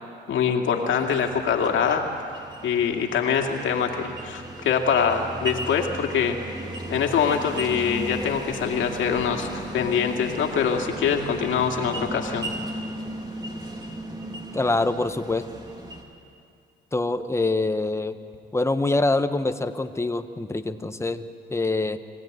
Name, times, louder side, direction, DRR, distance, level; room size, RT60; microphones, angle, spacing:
voice 1, 0.3-2.0 2.6-6.4 6.9-12.5, left 7 dB, 75° left, 3 dB, 2.4 m, -24 dB
sound 1, 0.9-16.0, right 1 dB, 20° right, 3.2 m, -36 dB
voice 2, 14.5-15.4 16.9-18.1 18.5-22.0, left 2 dB, 15° left, 9 dB, 1.1 m, -25 dB
24.5 x 16.0 x 9.4 m, 2.4 s
cardioid pair, 90°, 20 cm